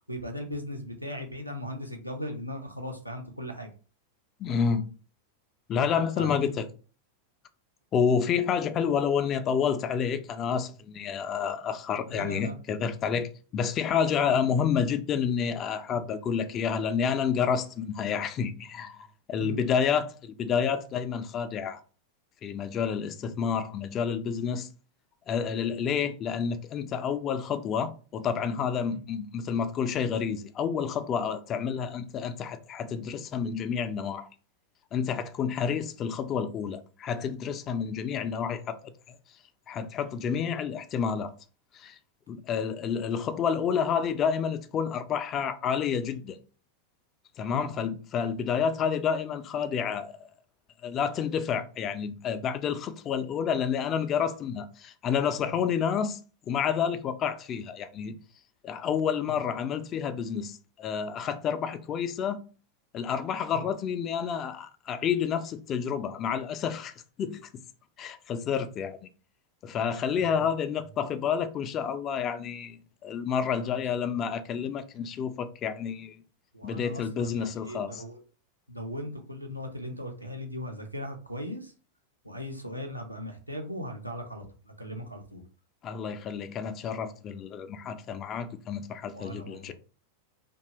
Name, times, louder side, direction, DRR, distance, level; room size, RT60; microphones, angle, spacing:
voice 1, 0.1-3.7 6.2-6.5 12.0-12.6 19.4-19.6 28.9-29.0 47.5-47.7 59.3-59.4 63.5-63.6 69.8-70.5 73.5-73.8 76.5-78.2 78.7-81.7 82.2-85.4 89.1-89.7, left 1 dB, 90° right, 0.5 m, -38 dB
voice 2, 4.4-4.9 5.7-6.7 7.9-21.8 22.4-24.7 25.3-34.3 34.9-38.8 39.1-39.2 39.7-41.3 41.7-42.0 42.3-46.4 47.4-50.1 50.8-56.2 56.5-58.2 58.6-62.4 62.9-66.9 67.2-67.4 68.0-69.0 69.6-76.2 76.6-78.0 85.8-89.7, left 7 dB, 30° left, 0.3 m, -29 dB
2.7 x 2.2 x 3.0 m
figure-of-eight pair, 90°, 0 cm